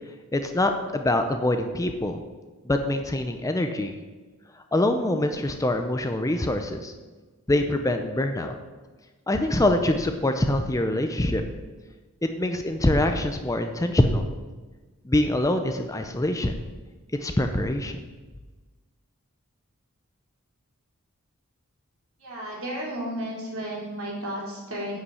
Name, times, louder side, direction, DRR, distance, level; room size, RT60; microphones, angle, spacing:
voice 1, 0.3-2.2 2.6-4.0 4.6-6.9 7.5-8.6 9.3-11.4 12.2-14.2 15.0-16.6 17.2-18.0, left 1 dB, 15° left, 6 dB, 0.6 m, -24 dB
voice 2, 22.2-25.0, equal, 65° right, -4 dB, 3.6 m, -33 dB
9.7 x 5.6 x 7.0 m, 1.3 s
head